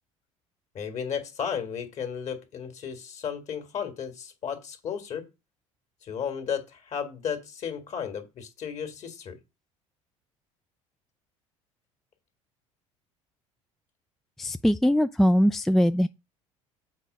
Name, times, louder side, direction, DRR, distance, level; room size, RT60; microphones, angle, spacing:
voice 1, 0.7-5.3 6.0-9.4, left 7 dB, 45° left, 1.9 m, -34 dB
voice 2, 14.4-16.1, equal, ahead, 0.3 m, -21 dB
7.2 x 4.5 x 5.4 m
figure-of-eight pair, 60°, 16 cm